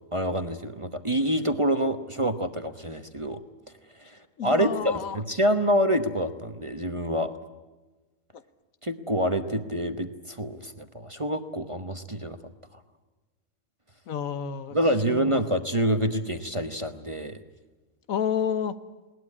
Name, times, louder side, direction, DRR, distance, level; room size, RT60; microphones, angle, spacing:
voice 1, 0.1-3.4 4.4-7.3 8.8-12.4 14.7-17.4, equal, 25° right, 8 dB, 0.9 m, -26 dB
voice 2, 4.4-5.2 14.1-14.8 15.1-15.4 18.1-18.7, left 8 dB, 75° left, 12 dB, 1.4 m, -29 dB
20.5 x 19.0 x 9.8 m, 1.2 s
omnidirectional pair, 1.5 m